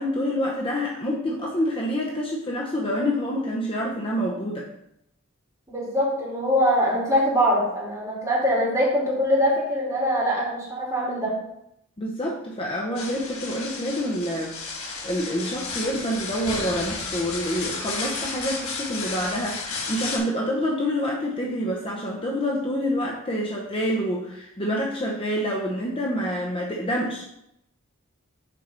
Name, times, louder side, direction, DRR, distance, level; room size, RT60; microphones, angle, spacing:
voice 1, 0.0-4.7 12.0-14.6 15.0-27.2, equal, 25° left, -2 dB, 0.8 m, -27 dB
voice 2, 5.7-11.4, equal, 15° right, -6 dB, 3.2 m, -23 dB
sound 1, 13.0-20.2, left 4 dB, 80° left, 1.7 m, -33 dB
6.7 x 4.6 x 5.3 m, 0.80 s
head